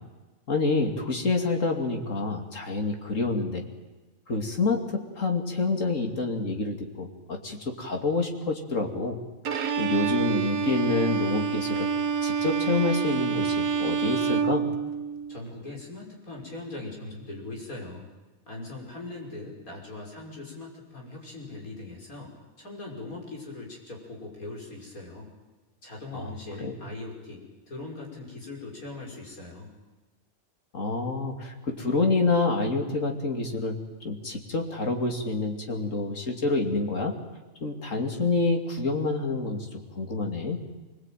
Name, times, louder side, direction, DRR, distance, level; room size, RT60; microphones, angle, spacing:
voice 1, 0.5-3.6 4.3-9.2 9.5-11.9 12.2-14.7 26.1-26.3 26.6-26.8 30.7-33.8 34.0-37.1 37.6-40.6, left 3 dB, 65° left, 3 dB, 3.1 m, -27 dB
Bowed string instrument, 9.4-15.4, right 6 dB, 85° right, 1.6 m, -27 dB
voice 2, 15.3-18.1 18.5-22.3 22.6-25.3 25.8-29.7, left 2 dB, 80° left, -1 dB, 6.4 m, -40 dB
25.0 x 21.0 x 9.2 m, 1.2 s
omnidirectional pair, 1.5 m